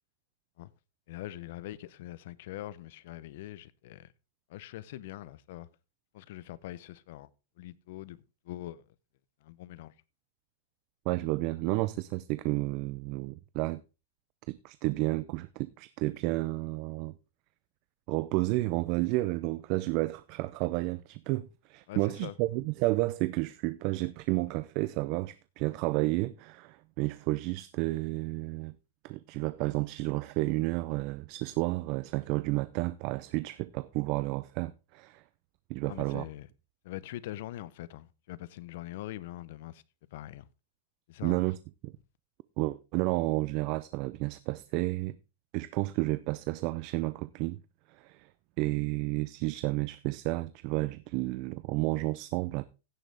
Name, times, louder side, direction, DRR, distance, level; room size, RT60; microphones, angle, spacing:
voice 1, 1.1-4.1 4.5-5.7 6.1-7.3 7.6-8.9 9.4-9.9 21.9-22.4 35.9-36.5 36.8-39.8 40.1-40.5 41.1-41.4, left 14 dB, 55° left, 0.7 m, -43 dB
voice 2, 11.1-13.8 14.5-17.1 18.1-28.8 29.0-35.2 35.7-36.2 41.2-41.6 41.8-41.9 42.6-45.2 45.5-47.6 47.9-48.3 48.6-52.7, right 21 dB, 40° right, 0.5 m, -31 dB
16.0 x 6.4 x 3.4 m
supercardioid pair, 155°, 0 cm